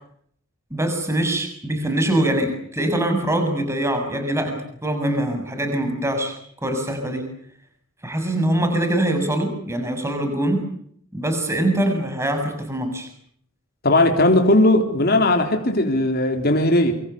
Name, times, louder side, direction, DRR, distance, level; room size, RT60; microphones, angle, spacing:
voice 1, 0.7-6.4 6.6-7.3 8.0-10.6 11.1-13.1, right 1 dB, 15° right, 6 dB, 6.9 m, -23 dB
voice 2, 13.8-16.9, left 1 dB, 45° left, 4 dB, 3.8 m, -17 dB
28.0 x 26.0 x 7.0 m, 0.65 s
head